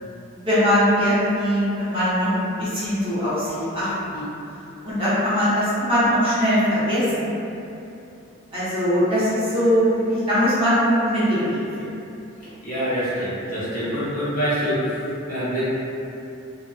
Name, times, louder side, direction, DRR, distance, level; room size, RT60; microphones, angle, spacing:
voice 1, 0.3-4.2 4.8-7.3 8.5-11.6, equal, 25° right, -12 dB, 0.8 m, -21 dB
voice 2, 12.4-15.6, equal, 40° left, -11 dB, 0.7 m, -26 dB
2.5 x 2.2 x 2.3 m, 2.8 s
head